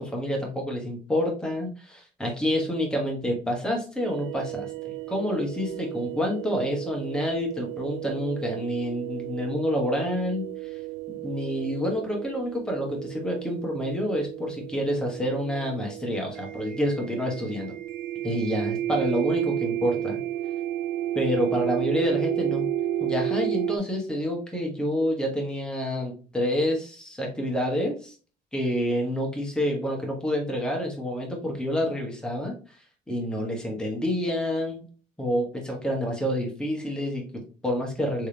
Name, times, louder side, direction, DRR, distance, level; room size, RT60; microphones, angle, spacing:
voice 1, 0.0-10.4 11.1-17.7 18.2-20.2 21.1-22.7 23.0-28.1 28.5-32.5 33.1-34.8 35.2-38.3, equal, 5° left, 0 dB, 1.3 m, -28 dB
sound 1, 4.0-23.8, right 13 dB, 80° right, 0.4 m, -32 dB
3.5 x 3.2 x 2.9 m, 0.38 s
cardioid pair, 110°, 17 cm